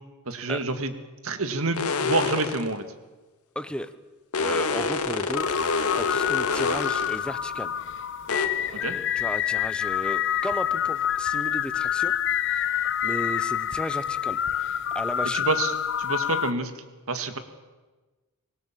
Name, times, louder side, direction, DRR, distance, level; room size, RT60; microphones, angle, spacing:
voice 1, 0.3-0.9 1.2-2.8 8.7-9.0 15.3-15.7 16.0-16.7 17.1-17.4, right 3 dB, 65° right, 8 dB, 1.9 m, -27 dB
sound 1, 1.7-2.7 4.3-7.2 8.3-8.5, left 4 dB, 75° left, 2.1 m, -27 dB
voice 2, 3.5-3.9 4.3-5.5 6.0-7.7 8.6-12.1 12.5-15.5, left 1 dB, 5° left, 12 dB, 0.9 m, -34 dB
sound 2, 5.3-16.5, left 10 dB, 55° left, 0.8 m, -27 dB
25.5 x 19.5 x 7.5 m, 1.2 s
head